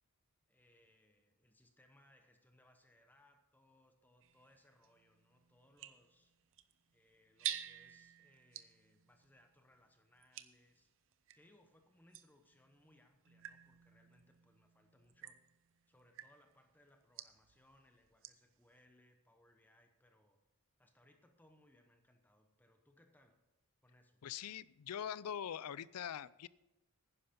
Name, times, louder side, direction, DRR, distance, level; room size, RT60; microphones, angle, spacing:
voice 1, 0.5-6.3 6.9-10.9 11.3-15.4 15.9-20.4 20.8-23.4 23.8-24.2, left 1 dB, 10° left, 5 dB, 0.9 m, -69 dB
sound 1, 4.2-11.5 12.1-18.6, right 11 dB, 60° right, 0.7 m, -51 dB
voice 2, 24.2-26.5, left 9 dB, 75° left, 20 dB, 0.4 m, -43 dB
11.0 x 10.0 x 5.2 m, 0.96 s
head